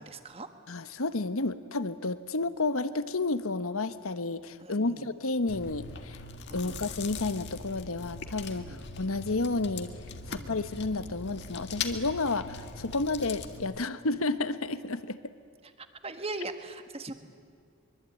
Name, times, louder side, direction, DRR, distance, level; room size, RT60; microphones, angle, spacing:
voice 1, 0.0-0.5 4.6-5.1 6.6-6.8 8.6-8.8 10.3-10.5 15.6-17.1, right 2 dB, 25° right, 8 dB, 1.5 m, -40 dB
voice 2, 0.7-6.2 6.5-9.9 10.3-15.3, left 3 dB, 75° left, 12 dB, 1.2 m, -31 dB
Chewing mastication, 5.5-13.6, left 4 dB, 50° left, 1.8 m, -41 dB
24.0 x 24.0 x 9.3 m, 2.2 s
head